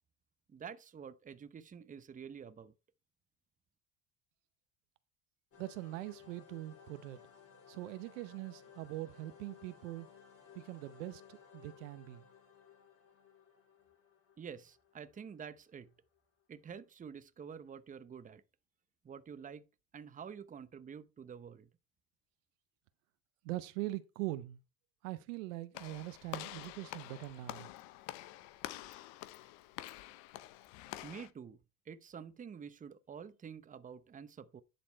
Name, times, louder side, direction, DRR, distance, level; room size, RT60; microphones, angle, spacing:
voice 1, 0.5-2.7 14.4-15.9 16.5-18.4 19.0-19.6 19.9-21.7 31.0-31.6 31.8-34.6, right 7 dB, 20° right, 0.8 m, -48 dB
sound 1, 5.5-16.2, left 7 dB, 35° left, 3.1 m, -59 dB
voice 2, 5.6-7.2 7.7-10.1 10.5-12.3 23.4-24.6 25.0-27.7, right 17 dB, 85° right, 0.8 m, -42 dB
Walk footsteps / Slam, 25.7-31.3, left 16 dB, 70° left, 0.8 m, -47 dB
10.5 x 4.3 x 4.5 m
supercardioid pair, 95°, 38 cm